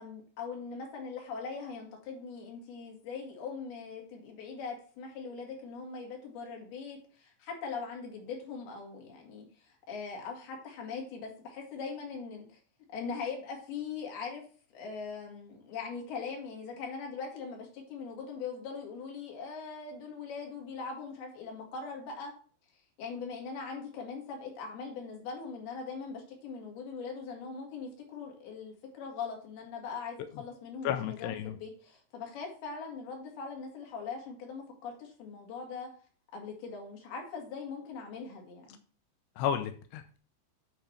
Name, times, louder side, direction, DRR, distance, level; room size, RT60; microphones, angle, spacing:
voice 1, 0.0-12.6 12.9-14.4 14.7-22.3 23.0-35.9 36.3-38.8, left 5 dB, 60° left, 1 dB, 3.9 m, -41 dB
voice 2, 30.8-31.5 39.4-40.2, left 9 dB, 80° left, 8 dB, 2.4 m, -32 dB
9.0 x 5.0 x 5.8 m, 0.40 s
omnidirectional pair, 5.6 m